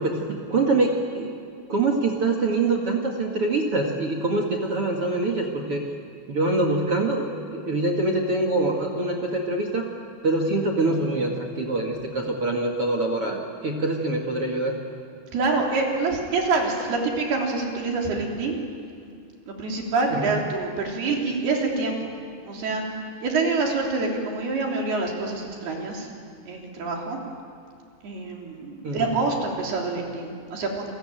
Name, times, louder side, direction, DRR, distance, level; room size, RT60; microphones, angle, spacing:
voice 1, 0.0-1.3 1.7-5.8 6.3-9.9 10.2-14.8 20.1-20.3 28.8-29.1, right 2 dB, 45° right, 3 dB, 2.1 m, -24 dB
voice 2, 15.3-18.6 19.5-22.0 22.5-26.1 26.5-27.2 28.0-30.9, right 3 dB, 65° right, 0 dB, 5.2 m, -26 dB
29.5 x 22.0 x 9.0 m, 2.2 s
omnidirectional pair, 5.0 m